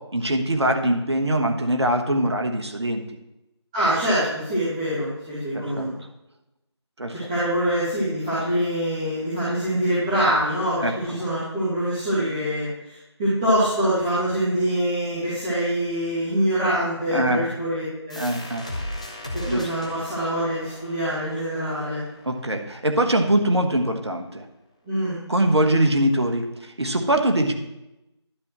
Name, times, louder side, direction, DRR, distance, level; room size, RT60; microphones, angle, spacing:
voice 1, 0.1-3.0 5.5-5.9 7.0-7.1 10.8-10.9 17.1-17.4 18.2-18.7 19.5-19.6 22.3-24.4 25.3-27.5, right 1 dB, 65° right, 4 dB, 1.3 m, -22 dB
voice 2, 3.7-6.0 7.3-18.2 19.3-22.0 24.8-25.2, equal, 10° right, -14 dB, 1.8 m, -24 dB
sound 1, 18.1-23.5, left 1 dB, 15° left, 0.5 m, -37 dB
12.0 x 7.1 x 3.1 m, 0.93 s
figure-of-eight pair, 165°, 15 cm